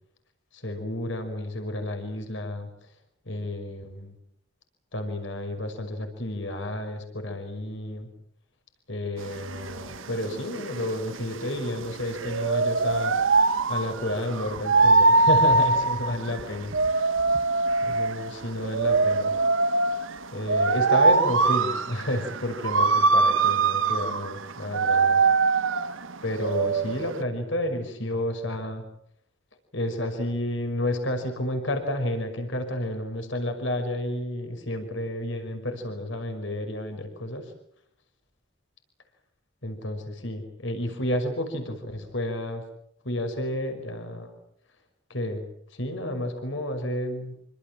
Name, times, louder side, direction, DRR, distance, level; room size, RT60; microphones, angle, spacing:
voice 1, 0.5-2.7 3.3-4.2 4.9-8.1 8.9-13.2 13.7-17.4 17.8-19.3 20.3-25.2 26.2-28.8 29.7-37.5 39.6-42.6 43.0-44.3 45.1-45.4 45.7-47.4, left 1 dB, 65° left, 6 dB, 5.7 m, -31 dB
sound 1, 9.2-27.2, right 3 dB, 75° right, 1.2 m, -23 dB
27.5 x 25.0 x 7.7 m, 0.70 s
head